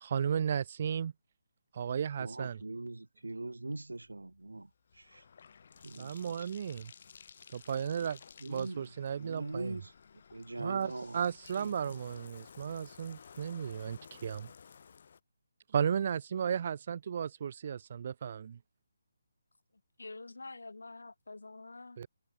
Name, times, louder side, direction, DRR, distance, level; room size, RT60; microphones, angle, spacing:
voice 1, 0.0-1.1 1.7-2.6 6.0-6.9 7.5-8.2 8.5-9.7 10.6-14.5 15.7-18.6 22.0-22.1, right 8 dB, 45° right, 0.7 m, -34 dB
voice 2, 2.2-5.2 5.8-6.5 8.4-8.9 9.2-9.9 10.3-11.2 11.6-12.2, right 2 dB, 80° right, 2.2 m, -42 dB
Bathtub (filling or washing), 3.8-15.2, left 6 dB, 50° left, 2.5 m, -55 dB
voice 3, 20.0-22.0, left 3 dB, 75° left, 2.5 m, -47 dB
figure-of-eight pair, 145°, 0 cm